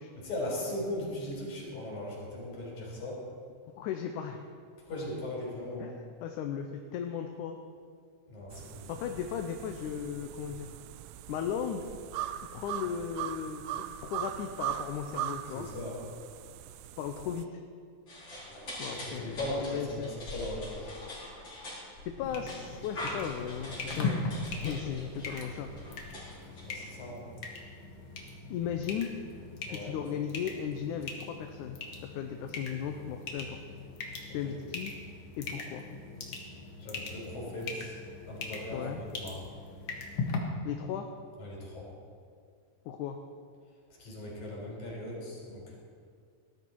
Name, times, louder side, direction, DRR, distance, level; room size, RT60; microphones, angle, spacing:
voice 1, 0.1-3.2 4.8-5.9 8.3-8.9 15.5-16.0 18.9-20.9 26.6-27.3 29.7-30.0 34.4-34.5 36.8-38.0 38.3-39.4 41.4-41.9 44.0-45.8, left 1 dB, 70° left, -3 dB, 5.6 m, -38 dB
voice 2, 3.8-4.4 5.8-6.7 6.9-7.6 8.9-10.7 11.3-11.8 12.5-15.7 17.0-17.6 18.8-20.1 22.1-25.7 28.5-29.1 29.7-31.8 32.1-33.6 34.3-34.9 35.4-35.8 38.7-39.0 40.6-41.1 42.9-43.2, left 8 dB, 85° left, 5 dB, 2.3 m, -36 dB
sound 1, 8.5-17.4, right 12 dB, 90° right, 1.4 m, -40 dB
sound 2, 18.1-27.1, left 1 dB, 35° left, 5.7 m, -43 dB
sound 3, 22.2-40.4, left 4 dB, 55° left, 2.4 m, -40 dB
19.0 x 12.5 x 4.6 m, 2.2 s
omnidirectional pair, 3.5 m